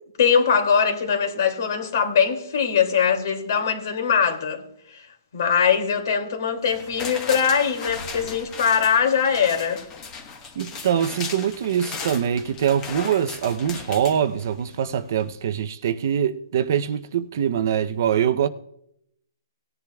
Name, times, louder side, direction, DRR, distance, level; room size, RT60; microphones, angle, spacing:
voice 1, 0.2-4.6 4.9-5.1 5.3-9.8, left 7 dB, 50° left, 2.5 m, -21 dB
sound 1, 6.6-14.8 15.2-15.3, left 5 dB, 15° left, 1.3 m, -37 dB
voice 2, 10.6-18.5, right 9 dB, 45° right, 0.7 m, -23 dB
19.5 x 10.5 x 2.4 m
hypercardioid pair, 170°, 2 cm